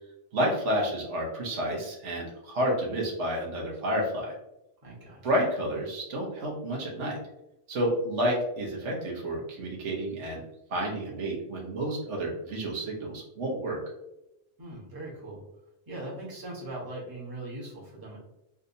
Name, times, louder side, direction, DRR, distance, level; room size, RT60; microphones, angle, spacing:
voice 1, 0.3-4.3 5.2-7.2 7.7-10.4 10.7-13.8, equal, 80° right, -2 dB, 1.2 m, -30 dB
voice 2, 4.8-5.2 14.6-15.4 15.9-18.2, right 1 dB, 20° right, -5 dB, 1.0 m, -40 dB
3.5 x 2.7 x 2.6 m, 0.87 s
omnidirectional pair, 1.2 m